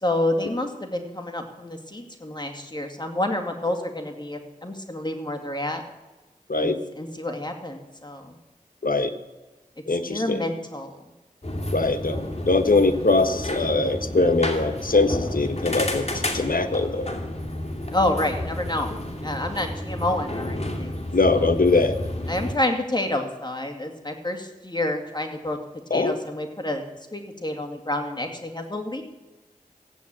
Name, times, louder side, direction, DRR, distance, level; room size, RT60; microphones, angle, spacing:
voice 1, 0.0-5.8 6.5-8.4 10.1-11.0 17.9-18.9 19.2-21.5 22.3-25.6 25.9-26.8 27.1-29.0, left 1 dB, 30° left, 4 dB, 2.2 m, -28 dB
voice 2, 9.9-10.4 11.7-12.2 12.5-16.0 16.3-17.1 21.1-21.9 25.9-26.1, left 3 dB, 75° left, 8 dB, 1.2 m, -21 dB
sound 1, 11.4-22.5, left 1 dB, 45° left, 2.6 m, -31 dB
15.5 x 8.5 x 8.7 m, 1.2 s
wide cardioid pair, 40°, 15 cm